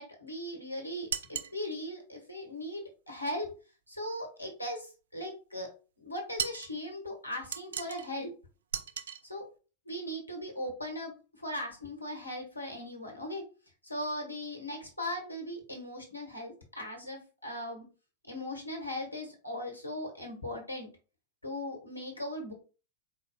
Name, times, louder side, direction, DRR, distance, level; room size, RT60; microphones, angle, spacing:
voice 1, 0.0-3.5 3.9-5.7 6.0-8.3 9.3-9.4 9.8-13.4 13.8-17.8 18.2-20.9 21.4-22.5, left 1 dB, 85° left, 2 dB, 1.4 m, -38 dB
sound 1, 1.1-1.6 6.4-6.7 7.5-8.1 8.7-9.2, right 8 dB, 65° right, 0.4 m, -36 dB
4.8 x 4.0 x 2.3 m, 0.33 s
figure-of-eight pair, 90°, 0 cm